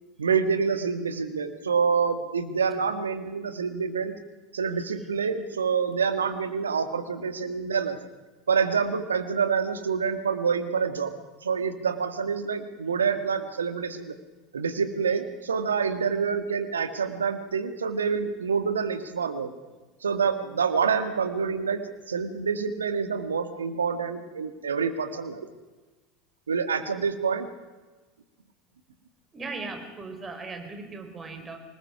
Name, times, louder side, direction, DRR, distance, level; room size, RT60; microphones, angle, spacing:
voice 1, 0.2-4.1 4.5-8.0 8.5-11.1 11.4-14.2 14.5-19.5 20.0-25.5 26.5-27.5, right 6 dB, 80° right, 9 dB, 1.7 m, -27 dB
voice 2, 29.3-31.6, right 3 dB, 20° right, 5 dB, 5.0 m, -38 dB
25.5 x 20.0 x 6.0 m, 1.2 s
figure-of-eight pair, 80°, 0 cm